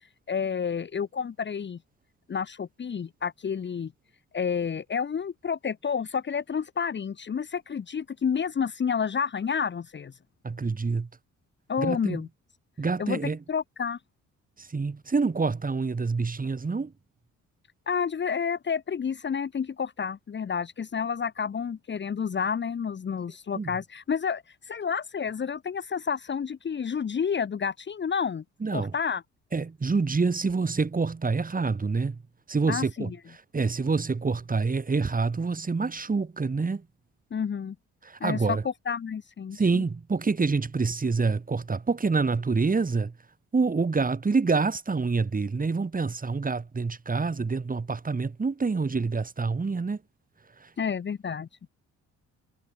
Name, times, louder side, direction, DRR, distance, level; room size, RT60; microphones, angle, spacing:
voice 1, 0.3-1.8 2.3-3.9 4.3-10.1 11.7-12.3 13.0-13.2 13.5-14.0 17.9-28.4 28.7-29.2 32.7-33.2 37.3-37.7 38.2-38.6 38.9-39.8 50.8-51.5, left 6 dB, 35° left, 1.2 m, -30 dB
voice 2, 10.4-11.1 11.8-12.2 12.8-13.4 14.6-16.9 23.5-23.7 28.6-29.0 29.5-32.2 32.5-36.9 38.0-38.6 39.5-43.1 43.5-50.0 50.6-50.7, right 4 dB, 30° right, 4.7 m, -27 dB
cardioid pair, 90°, 30 cm